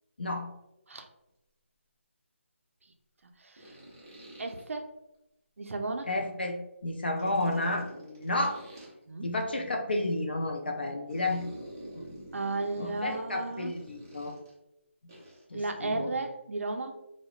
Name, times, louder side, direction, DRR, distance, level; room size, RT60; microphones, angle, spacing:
voice 1, 0.2-0.5 6.1-6.6 6.8-8.6 9.2-11.4 11.9-12.0 12.8-14.3 15.5-16.1, left 2 dB, 50° left, 4 dB, 0.4 m, -31 dB
voice 2, 3.2-3.8 4.4-4.9 5.6-6.1 9.1-9.4 12.3-13.7 15.5-17.0, right 3 dB, 80° right, 5 dB, 0.4 m, -34 dB
sound 1, 3.6-4.6 7.2-8.9 11.1-14.5 15.1-15.4, right 1 dB, 15° right, 0.4 m, -46 dB
2.7 x 2.0 x 2.3 m, 0.89 s
figure-of-eight pair, 180°, 7 cm